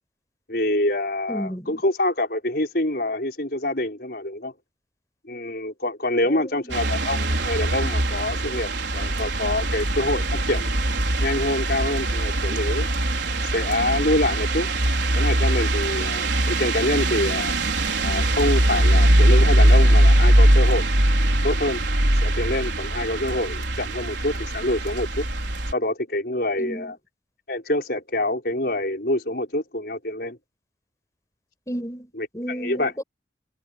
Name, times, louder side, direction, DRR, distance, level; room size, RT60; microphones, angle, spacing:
voice 1, 0.5-4.5 5.2-10.7 11.2-12.9 13.5-14.7 15.1-17.5 18.0-20.9 21.4-21.8 22.2-25.3 25.7-27.0 27.5-30.4 32.2-32.9, left 1 dB, 55° left, 5.7 m, -26 dB
voice 2, 1.3-1.8 6.2-6.7 26.6-26.9 31.7-33.0, equal, 15° left, 6.5 m, -33 dB
sound 1, 6.7-25.7, right 1 dB, 80° right, 4.2 m, -21 dB
head